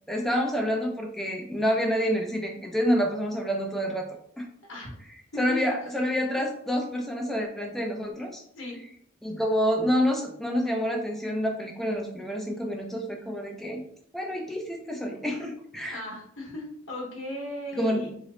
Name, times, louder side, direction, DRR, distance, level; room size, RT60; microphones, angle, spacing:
voice 1, 0.1-4.1 4.4-4.5 5.4-8.4 9.2-13.8 14.1-16.0 17.7-18.1, equal, ahead, 1 dB, 0.4 m, -28 dB
voice 2, 4.6-4.9 5.3-5.6 8.5-8.8 15.8-18.1, left 1 dB, 75° left, -3 dB, 0.9 m, -37 dB
3.0 x 2.0 x 3.7 m, 0.67 s
head